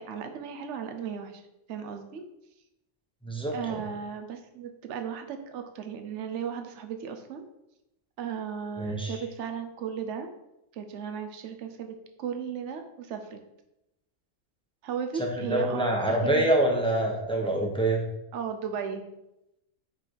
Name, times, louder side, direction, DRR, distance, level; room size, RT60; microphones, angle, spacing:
voice 1, 0.0-1.4 1.7-2.2 3.5-7.4 8.2-10.3 10.7-13.4 14.8-16.5 18.3-19.0, right 7 dB, 65° right, 6 dB, 1.0 m, -35 dB
voice 2, 3.2-3.8 8.8-9.2 15.3-18.0, right 1 dB, 5° left, -1 dB, 1.0 m, -26 dB
5.2 x 5.2 x 4.6 m, 0.87 s
omnidirectional pair, 1.4 m